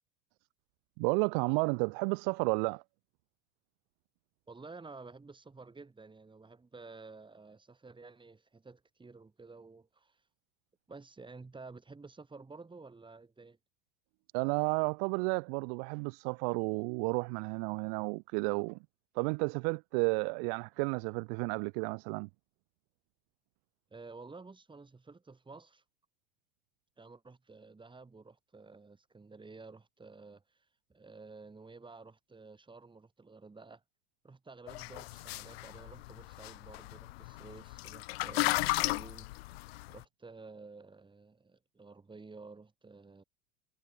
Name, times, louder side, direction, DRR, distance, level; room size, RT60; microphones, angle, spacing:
voice 1, 1.0-2.8 14.3-18.8 19.2-22.3, right 40 dB or more, 55° right, 0.4 m, -32 dB
voice 2, 4.5-10.2 10.9-13.6 23.9-25.8 27.0-33.8 34.2-39.6 39.9-43.2, right 3 dB, 15° right, 4.0 m, -52 dB
sound 1, 34.7-40.0, left 20 dB, 70° left, 0.6 m, -35 dB
hypercardioid pair, 80°, 32 cm